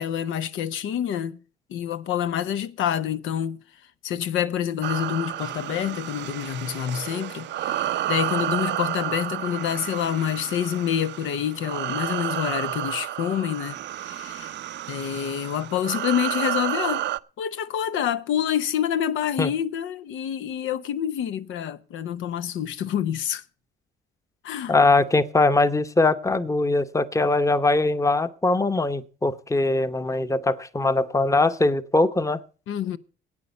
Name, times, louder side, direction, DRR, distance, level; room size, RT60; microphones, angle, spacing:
voice 1, 0.0-1.4 1.7-3.6 4.0-14.5 14.9-17.1 17.4-23.4 24.4-24.8 32.7-33.0, left 9 dB, 85° left, 0.8 m, -27 dB
sound 1, 4.8-17.2, right 12 dB, 65° right, 0.5 m, -31 dB
voice 2, 24.7-32.4, left 2 dB, 15° left, 0.9 m, -21 dB
10.5 x 8.8 x 6.9 m
cardioid pair, 90°, 20 cm